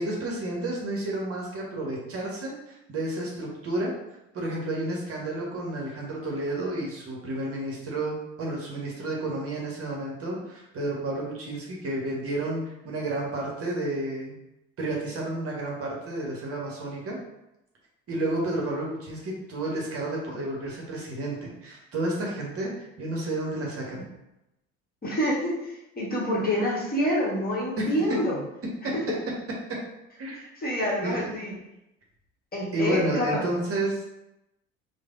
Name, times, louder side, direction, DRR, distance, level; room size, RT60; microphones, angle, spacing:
voice 1, 0.0-3.9 4.3-14.3 14.8-17.2 18.1-24.1 27.8-27.9 30.2-30.4 31.0-31.3 32.7-34.0, right 1 dB, 40° right, -2 dB, 0.8 m, -31 dB
voice 2, 25.0-28.4 28.9-29.2 30.6-31.5 32.5-33.4, equal, 25° left, -5 dB, 1.1 m, -27 dB
3.1 x 2.1 x 2.4 m, 0.90 s
hypercardioid pair, 60°, 38 cm